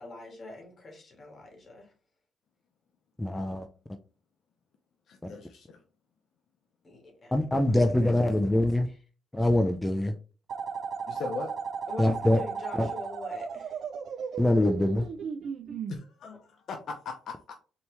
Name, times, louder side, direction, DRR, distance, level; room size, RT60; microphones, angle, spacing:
voice 1, 0.0-1.9 6.8-8.3 8.8-9.0 11.9-13.8 14.2-14.4 16.2-16.4, left 2 dB, 40° left, 2.0 m, -45 dB
voice 2, 3.2-3.7 7.3-8.9 9.3-10.1 12.0-12.4 12.8-12.9 14.4-15.1, left 1 dB, 10° left, 0.5 m, -24 dB
voice 3, 5.1-5.8 11.1-11.5 15.9-17.6, left 4 dB, 65° left, 0.7 m, -39 dB
sound 1, 10.5-16.0, right 6 dB, 60° right, 0.4 m, -35 dB
4.2 x 2.9 x 3.4 m
cardioid pair, 90°, 0 cm